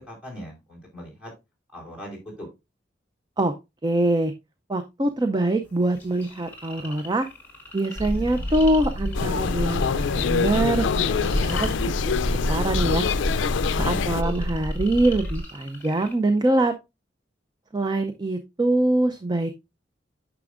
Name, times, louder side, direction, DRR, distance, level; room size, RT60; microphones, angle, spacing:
voice 1, 0.1-1.3 1.7-2.5 13.8-14.5, left 1 dB, 5° right, -2 dB, 3.8 m, -39 dB
voice 2, 3.8-4.3 4.7-7.3 7.7-9.8 10.1-11.7 12.5-13.1 13.8-16.7 17.7-19.5, right 1 dB, 20° right, 8 dB, 0.4 m, -24 dB
sound 1, 5.6-16.1, left 3 dB, 10° left, 2.1 m, -44 dB
sound 2, 8.0-15.4, equal, 80° right, 4.2 m, -28 dB
sound 3, 9.1-14.2, left 6 dB, 90° left, 0.4 m, -26 dB
9.4 x 6.0 x 2.4 m, 0.23 s
head